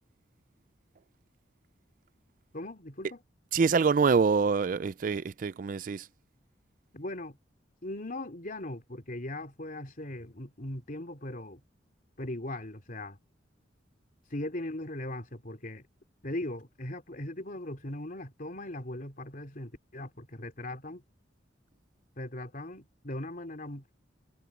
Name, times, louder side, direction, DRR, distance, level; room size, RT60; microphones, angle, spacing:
voice 1, 2.5-3.2 6.9-7.4 7.8-11.6 12.2-13.2 14.3-15.9 16.2-21.0 22.2-23.8, left 1 dB, 45° left, 3.5 m, -39 dB
voice 2, 3.5-6.1, right 5 dB, 45° right, 0.4 m, -25 dB
head